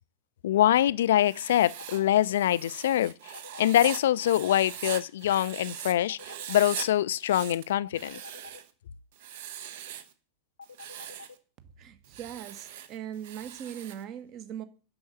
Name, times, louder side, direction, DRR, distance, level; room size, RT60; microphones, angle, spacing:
voice 1, 0.4-8.2, left 12 dB, 60° left, 0.4 m, -24 dB
Writing, 1.2-5.9 6.2-6.9 7.2-8.7 9.2-10.1 10.6-11.3 12.0-14.0, right 10 dB, 55° right, 1.0 m, -41 dB
sound 1, 1.7-2.3 3.3-4.1 6.1-6.8 7.8-8.6 10.6-11.3, left 5 dB, 75° left, 0.8 m, -47 dB
voice 2, 11.8-14.6, right 9 dB, 35° right, 1.2 m, -40 dB
7.7 x 6.3 x 6.9 m
figure-of-eight pair, 90°, 0 cm